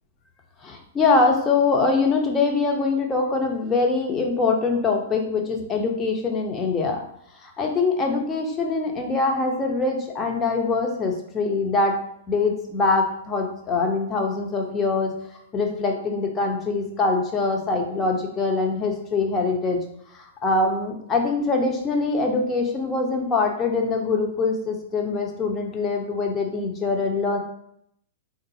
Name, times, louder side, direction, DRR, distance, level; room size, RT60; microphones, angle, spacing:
voice 1, 0.6-7.0 7.4-12.0 12.3-15.1 15.5-19.8 20.1-27.4, left 3 dB, 20° left, 2 dB, 0.9 m, -23 dB
3.9 x 3.7 x 2.8 m, 0.72 s
figure-of-eight pair, 105°, 0 cm